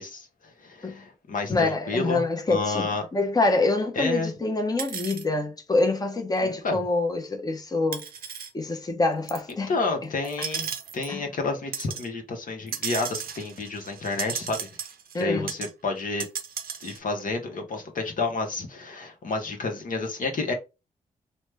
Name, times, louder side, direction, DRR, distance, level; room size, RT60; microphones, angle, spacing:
voice 1, 0.0-2.2 2.5-3.1 3.9-4.3 6.4-6.8 9.7-14.7 15.1-16.3 16.8-20.5, left 3 dB, 55° left, 0.8 m, -30 dB
voice 2, 1.5-8.0 8.5-9.7 11.1-11.2 15.1-15.5, left 2 dB, 25° left, 0.7 m, -26 dB
sound 1, 4.8-5.2 6.4-6.5 7.9-8.5 9.3-9.5 10.2-11.1 11.7-12.1 12.7-15.2 15.5-15.7 16.0-17.0, right 7 dB, 70° right, 0.5 m, -35 dB
3.1 x 2.1 x 3.3 m
supercardioid pair, 45°, 16 cm